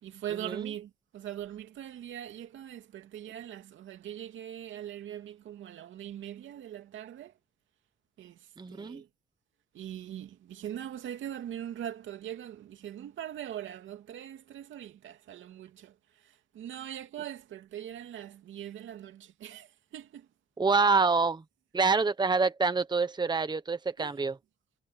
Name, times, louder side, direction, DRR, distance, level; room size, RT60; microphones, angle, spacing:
voice 1, 0.0-7.3 8.2-9.1 9.7-20.3 24.0-24.2, right 11 dB, 75° right, 2.6 m, -41 dB
voice 2, 8.6-9.0 20.6-21.4 21.7-24.3, right 4 dB, 20° right, 1.2 m, -26 dB
cardioid pair, 90°, 20 cm